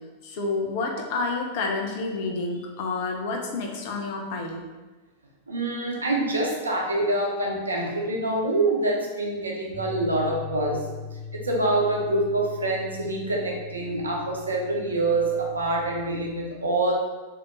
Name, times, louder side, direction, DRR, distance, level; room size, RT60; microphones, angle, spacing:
voice 1, 0.2-4.6, left 3 dB, 50° left, 1 dB, 0.7 m, -29 dB
voice 2, 5.5-10.8 11.3-16.9, right 2 dB, 75° right, -1 dB, 0.7 m, -26 dB
sound 1, 9.7-16.0, left 6 dB, 65° left, 1.1 m, -40 dB
3.5 x 2.8 x 3.8 m, 1.2 s
figure-of-eight pair, 90°, 0 cm